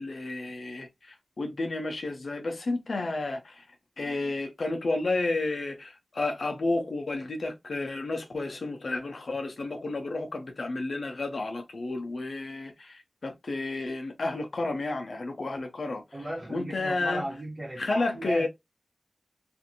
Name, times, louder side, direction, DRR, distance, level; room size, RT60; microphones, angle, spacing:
voice 1, 0.0-3.6 4.0-17.2 17.8-18.5, left 2 dB, 85° left, 0.5 m, -31 dB
voice 2, 16.1-18.5, right 1 dB, 40° right, 1.1 m, -35 dB
2.5 x 2.5 x 2.7 m
cardioid pair, 40°, 0 cm